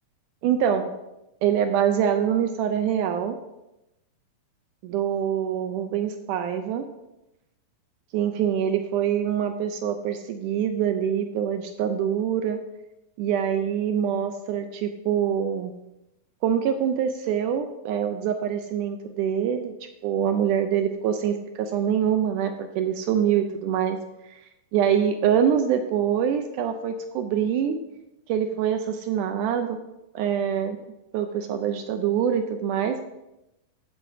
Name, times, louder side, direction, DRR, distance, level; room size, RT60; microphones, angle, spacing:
voice 1, 0.4-0.9 1.4-3.4 4.8-6.9 8.1-12.6 13.2-15.7 16.4-19.7 20.0-24.0 24.3-24.4 24.7-27.8 28.3-29.8 30.2-30.8 31.1-33.0, right 9 dB, 80° right, 7 dB, 1.9 m, -25 dB
14.0 x 7.9 x 2.7 m, 0.93 s
omnidirectional pair, 4.0 m